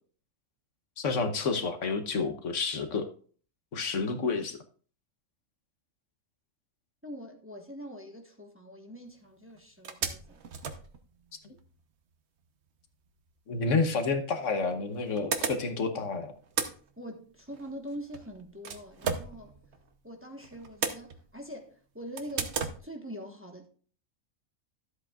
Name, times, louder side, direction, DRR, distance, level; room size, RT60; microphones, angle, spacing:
voice 1, 1.0-3.1 3.7-4.6 13.5-16.3, left 4 dB, 70° left, 1.3 m, -29 dB
voice 2, 7.0-10.4 17.0-19.6 20.0-23.7, equal, 10° right, 1.1 m, -44 dB
sound 1, 9.1-9.2 9.5-9.6 9.8-11.7 13.7-13.8 14.7-16.0 16.3-20.0 20.4-21.6 22.2-22.8, right 6 dB, 60° right, 1.1 m, -36 dB
13.0 x 8.0 x 2.4 m
omnidirectional pair, 1.4 m